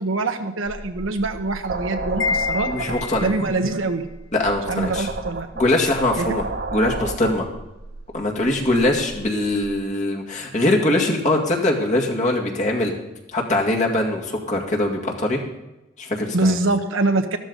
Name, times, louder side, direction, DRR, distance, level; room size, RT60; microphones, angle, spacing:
voice 1, 0.0-2.7 3.2-4.0 4.7-5.5 6.2-6.3 16.3-17.4, right 2 dB, 90° right, 6 dB, 1.2 m, -24 dB
sound 1, 0.7-9.8, right 3 dB, 50° right, 0.9 m, -33 dB
Wind chime, 2.2-3.6, left 5 dB, 80° left, 0.8 m, -27 dB
voice 2, 2.7-3.3 4.3-5.1 5.5-6.5 6.7-7.5 8.1-12.9 13.3-15.4 16.0-16.5, left 1 dB, 40° left, 0 dB, 2.1 m, -22 dB
13.5 x 13.0 x 4.0 m, 0.99 s
head